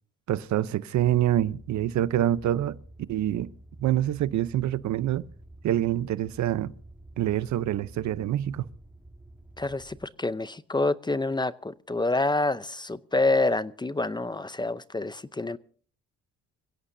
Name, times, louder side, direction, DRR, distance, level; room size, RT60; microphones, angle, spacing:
voice 1, 0.3-2.8 3.1-3.5 3.8-5.3 5.6-6.7 7.2-8.7, right 12 dB, 70° right, 0.7 m, -26 dB
sound 1, 0.9-10.1, right 1 dB, 5° right, 1.8 m, -49 dB
voice 2, 9.6-15.6, left 2 dB, 15° left, 0.6 m, -27 dB
26.0 x 16.5 x 2.7 m
cardioid pair, 90°, 30 cm